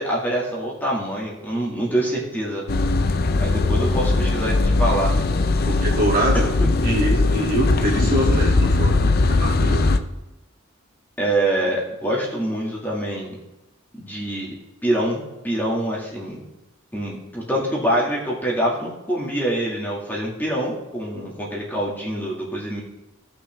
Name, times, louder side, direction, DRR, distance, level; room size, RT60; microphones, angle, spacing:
voice 1, 0.0-2.6 3.4-5.1 5.5-5.9 6.3-6.7 11.2-13.3 14.0-14.5 14.8-16.4 16.9-22.8, right 1 dB, 10° left, -5 dB, 2.2 m, -25 dB
sound 1, 2.7-10.0, left 3 dB, 50° left, 0.6 m, -20 dB
voice 2, 5.6-6.5 6.8-9.9, right 1 dB, 45° right, -4 dB, 2.8 m, -24 dB
17.0 x 6.1 x 3.6 m, 0.98 s
head